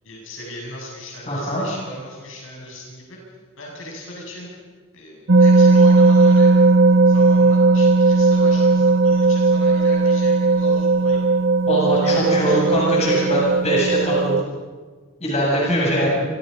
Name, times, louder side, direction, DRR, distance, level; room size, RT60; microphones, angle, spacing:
voice 1, 0.0-3.2 3.6-4.5 4.9-11.2 12.0-13.3 15.9-16.1, equal, 65° left, -1 dB, 7.7 m, -37 dB
voice 2, 1.3-1.7 11.7-14.4 15.2-16.3, equal, 30° left, -4 dB, 7.8 m, -21 dB
sound 1, 5.3-14.4, right 3 dB, 55° right, 0.7 m, -16 dB
28.5 x 26.0 x 5.6 m, 1.5 s
head